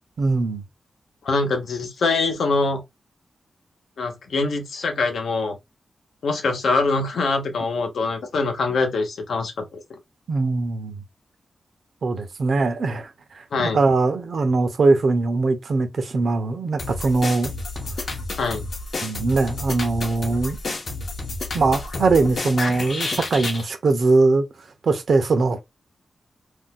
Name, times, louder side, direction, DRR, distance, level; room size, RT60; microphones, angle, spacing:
voice 1, 0.2-0.6 10.3-11.0 12.0-17.5 18.1-18.2 19.0-20.7 21.5-24.5 24.8-25.6, right 3 dB, 60° right, 0.6 m, -21 dB
voice 2, 1.2-2.8 4.0-5.6 6.2-9.8 13.5-13.8 18.4-18.6, left 3 dB, 85° left, 0.9 m, -23 dB
sound 1, 16.8-23.6, left 3 dB, 50° left, 0.7 m, -30 dB
2.6 x 2.2 x 3.7 m
wide cardioid pair, 155°, 0 cm